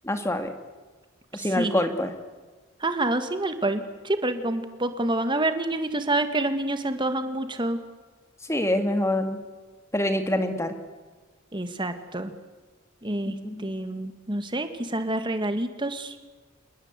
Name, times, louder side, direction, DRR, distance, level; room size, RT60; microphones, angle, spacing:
voice 1, 0.0-0.5 1.3-2.1 8.5-9.4 9.9-10.8 13.3-13.8, left 1 dB, 15° left, 7 dB, 2.3 m, -26 dB
voice 2, 1.3-1.8 2.8-7.8 11.5-12.3 13.0-13.3 13.6-16.1, right 2 dB, 25° right, 8 dB, 1.9 m, -27 dB
28.0 x 20.5 x 8.3 m, 1.3 s
head